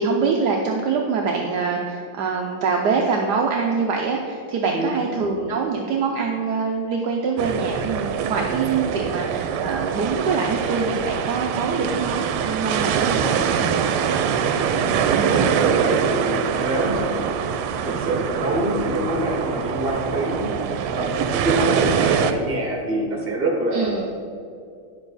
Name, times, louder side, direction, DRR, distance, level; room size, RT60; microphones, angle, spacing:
voice 1, 0.0-13.3 23.7-24.0, right 4 dB, 70° right, 1 dB, 1.0 m, -24 dB
sound 1, 7.4-22.3, right 7 dB, 85° right, 1.5 m, -24 dB
voice 2, 14.6-14.9 15.3-17.2 17.8-20.5 20.9-24.0, right 1 dB, 30° right, -1 dB, 1.6 m, -25 dB
9.7 x 6.9 x 4.0 m, 2.4 s
omnidirectional pair, 2.4 m